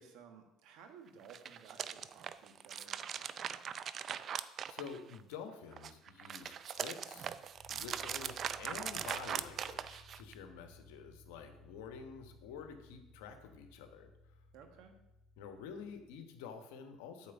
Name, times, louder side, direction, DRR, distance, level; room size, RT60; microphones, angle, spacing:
voice 1, 0.0-3.6 14.5-15.0, right 6 dB, 70° right, 5 dB, 1.4 m, -57 dB
sound 1, 1.2-5.3 5.7-10.3, right 8 dB, 45° right, 0.4 m, -41 dB
voice 2, 4.7-7.4 7.7-14.1 15.4-17.3, left 6 dB, 85° left, 6 dB, 1.1 m, -49 dB
sound 2, 7.5-16.2, left 1 dB, 15° left, 2.2 m, -60 dB
8.6 x 4.6 x 7.0 m, 0.93 s
supercardioid pair, 90°, 0 cm